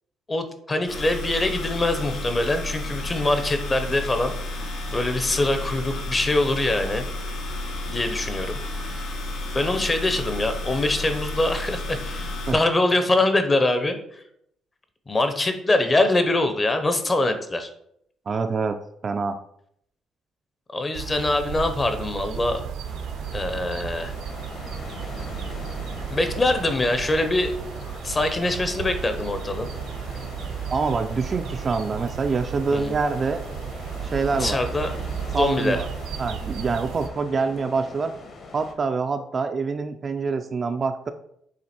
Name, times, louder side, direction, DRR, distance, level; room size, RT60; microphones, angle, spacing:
voice 1, 0.3-4.6 4.9-7.0 7.9-8.6 8.9-9.1 9.5-14.2 15.1-17.7 20.7-22.6 23.3-24.2 26.1-27.5 27.8-29.7 32.7-32.9 34.4-35.0 35.3-35.8, left 2 dB, 20° left, 8 dB, 0.7 m, -24 dB
sound 1, 0.9-12.5, left 1 dB, 70° left, 1.3 m, -32 dB
voice 2, 18.3-19.4 30.7-33.4 34.0-34.6 35.3-35.9 36.2-38.1 38.5-41.1, right 4 dB, 30° right, 7 dB, 0.4 m, -25 dB
sound 2, 20.9-37.1, right 8 dB, 80° right, 0.7 m, -34 dB
sound 3, 22.8-38.7, left 3 dB, 45° left, 1.1 m, -41 dB
7.5 x 3.3 x 4.3 m, 0.71 s
cardioid pair, 150°, 0 cm